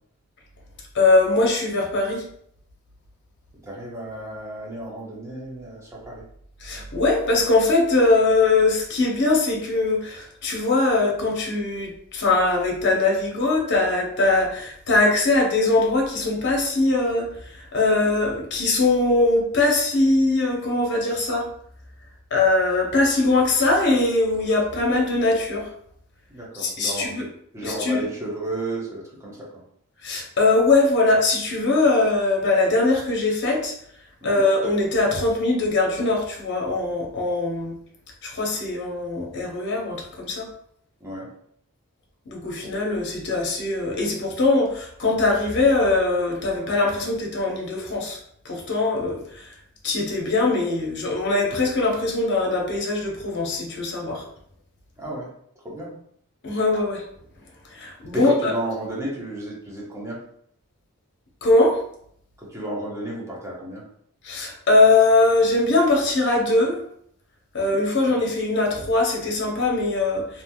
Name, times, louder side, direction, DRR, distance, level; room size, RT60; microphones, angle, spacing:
voice 1, 0.9-2.2 6.6-21.5 22.3-25.7 26.5-27.2 27.6-28.1 30.0-33.7 34.2-37.7 38.2-40.5 42.3-48.2 48.4-49.5 49.8-54.2 56.4-57.0 57.6-58.5 61.4-61.8 64.2-66.8 67.5-70.4, left 2 dB, 55° left, 0 dB, 0.8 m, -21 dB
voice 2, 3.6-6.2 26.3-27.3 27.5-29.6 34.2-34.4 41.0-41.3 55.0-55.3 55.6-55.9 58.1-60.2 62.4-63.8 67.6-67.7 68.0-68.2, right 1 dB, 15° right, -5 dB, 0.9 m, -32 dB
3.2 x 2.8 x 2.2 m, 0.66 s
head